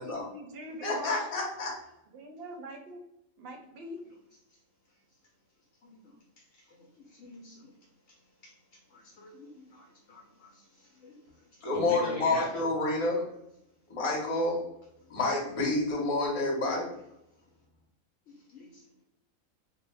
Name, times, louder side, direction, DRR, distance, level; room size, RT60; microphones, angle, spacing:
voice 1, 0.0-1.4 2.1-3.0 3.4-4.0, right 1 dB, 60° right, 3 dB, 0.7 m, -43 dB
voice 2, 0.8-1.7 11.6-13.3 13.9-14.6 15.1-16.9, left 2 dB, 30° left, -2 dB, 0.7 m, -29 dB
voice 3, 5.8-6.1 6.6-7.7 8.4-12.6 18.5-18.8, left 2 dB, 70° left, -2 dB, 0.9 m, -44 dB
2.5 x 2.1 x 3.2 m, 0.80 s
omnidirectional pair, 1.4 m